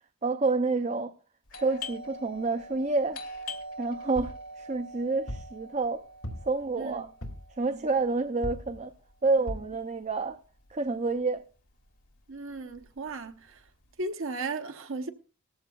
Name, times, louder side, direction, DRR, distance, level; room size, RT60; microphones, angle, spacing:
voice 1, 0.2-1.1 1.5-3.2 3.8-6.0 6.5-7.1 7.6-8.9 9.2-10.4 10.7-11.4, right 3 dB, 30° right, 0.5 m, -28 dB
Doorbell, 1.5-10.9 11.1-11.2 11.9-12.2 12.5-13.9, left 1 dB, 90° left, 2.5 m, -44 dB
sound 1, 4.2-4.5 5.3-5.6 6.2-6.6 7.2-7.5 8.4-8.8 9.5-9.8 10.3-10.4 10.7-10.8, equal, 70° left, 2.4 m, -38 dB
voice 2, 12.3-13.7 14.0-15.1, right 3 dB, 60° right, 0.9 m, -36 dB
18.5 x 14.0 x 2.3 m
head